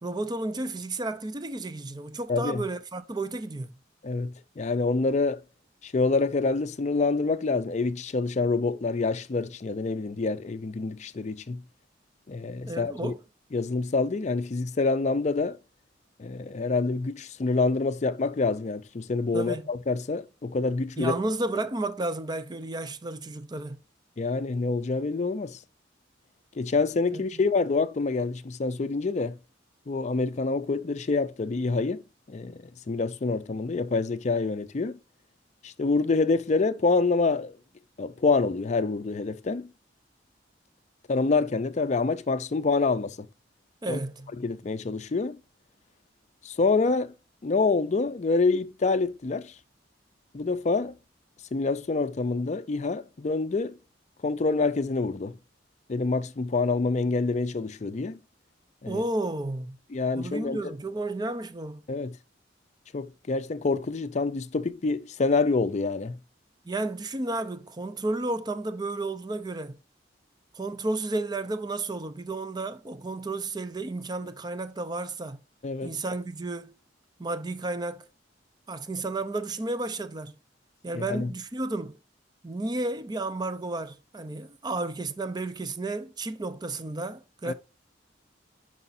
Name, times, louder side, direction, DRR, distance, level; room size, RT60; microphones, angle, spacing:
voice 1, 0.0-3.7 12.7-13.2 19.3-19.7 21.0-23.8 27.1-27.4 43.8-44.3 58.9-59.8 60.1-61.8 66.7-69.8 70.5-75.4 75.8-76.7 77.2-78.1 78.7-80.4 80.8-82.0 82.4-87.5, right 2 dB, 25° right, 0.5 m, -32 dB
voice 2, 2.3-2.6 4.0-5.4 5.8-11.6 12.3-13.1 13.5-15.6 16.2-21.1 24.2-25.6 26.6-29.4 29.9-32.0 32.3-35.0 35.6-37.5 38.0-39.7 41.1-43.2 43.9-44.0 44.4-45.4 46.4-47.1 47.4-49.5 50.3-50.9 51.5-53.7 54.2-55.4 55.9-58.2 58.8-59.0 59.9-60.7 61.9-62.1 62.9-66.2 75.6-75.9 80.9-81.3 87.5-87.6, left 3 dB, 40° left, 0.4 m, -26 dB
9.7 x 4.9 x 2.6 m
head